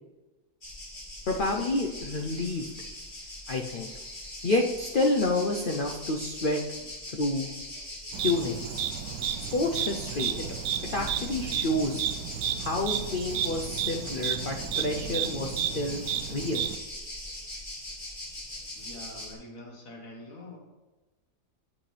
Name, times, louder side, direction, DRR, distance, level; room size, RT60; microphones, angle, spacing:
sound 1, 0.6-19.3, left 1 dB, 30° left, 2.1 m, -41 dB
voice 1, 1.3-2.6 3.5-3.9 4.4-6.6 7.1-7.5 8.2-8.8 9.4-10.5 10.9-12.0 12.6-16.6, left 2 dB, 85° left, 1 dB, 0.4 m, -29 dB
sound 2, 8.1-16.8, right 10 dB, 70° right, 1.0 m, -32 dB
voice 2, 18.8-20.6, left 1 dB, 55° left, 0 dB, 1.9 m, -45 dB
8.3 x 8.2 x 3.3 m, 1.2 s
omnidirectional pair, 1.8 m